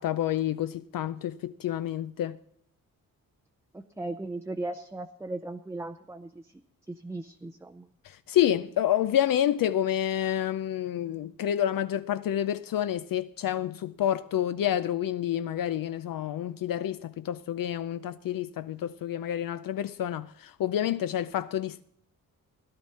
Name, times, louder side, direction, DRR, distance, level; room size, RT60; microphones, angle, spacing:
voice 1, 0.0-2.4 8.0-21.8, left 11 dB, 70° left, 0.5 m, -28 dB
voice 2, 3.7-6.3 6.9-7.9, right 2 dB, 10° right, 0.5 m, -37 dB
16.5 x 11.0 x 4.2 m
wide cardioid pair, 115°, 35 cm